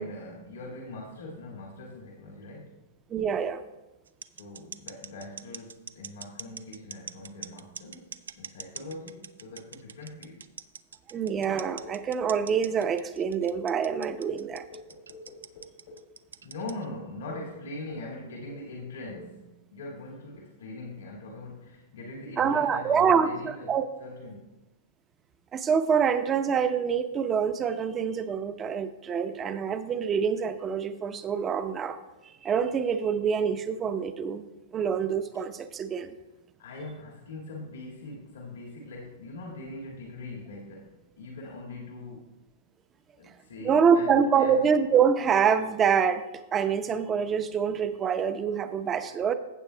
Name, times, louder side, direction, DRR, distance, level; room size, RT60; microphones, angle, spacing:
voice 1, 0.0-2.9 4.3-10.5 16.4-24.5 36.6-42.4 43.2-44.6, left 2 dB, 80° left, -3 dB, 1.9 m, -42 dB
voice 2, 3.1-3.6 11.1-14.6 22.4-23.9 25.5-32.0 32.2-34.4 34.7-36.1 43.6-46.3 46.5-49.3, right 7 dB, 25° right, 10 dB, 0.6 m, -26 dB
sound 1, 4.1-16.8, right 6 dB, 85° right, 0.3 m, -42 dB
sound 2, 11.3-12.8 13.3-16.1 16.6-16.8 17.3-17.6 17.9-18.2 18.5-18.8 19.1-19.4, left 2 dB, 65° left, 1.4 m, -48 dB
15.5 x 7.3 x 2.2 m, 1.1 s
hypercardioid pair, 115°, 0 cm